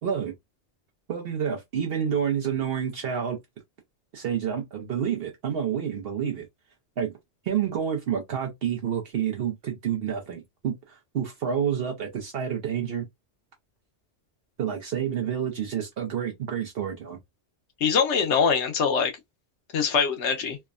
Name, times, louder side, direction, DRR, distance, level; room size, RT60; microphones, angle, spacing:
voice 1, 0.0-0.3 1.1-3.4 4.1-6.5 7.0-7.1 7.5-13.1 14.6-17.2, right 8 dB, 65° right, 0.8 m, -29 dB
voice 2, 17.8-19.1 19.7-20.6, left 6 dB, 90° left, 1.0 m, -23 dB
3.3 x 2.1 x 2.4 m
omnidirectional pair, 1.1 m